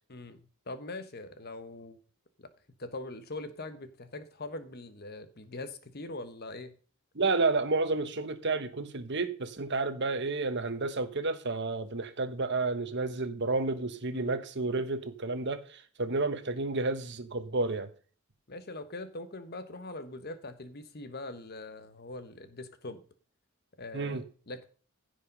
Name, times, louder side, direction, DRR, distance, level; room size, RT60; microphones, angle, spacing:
voice 1, 0.1-2.0 2.4-2.5 2.8-6.7 14.1-14.4 18.5-23.0 23.8-24.6, left 2 dB, 45° left, 1.2 m, -42 dB
voice 2, 7.1-17.9 23.9-24.2, right 3 dB, 50° right, 1.2 m, -31 dB
15.5 x 5.2 x 5.4 m
head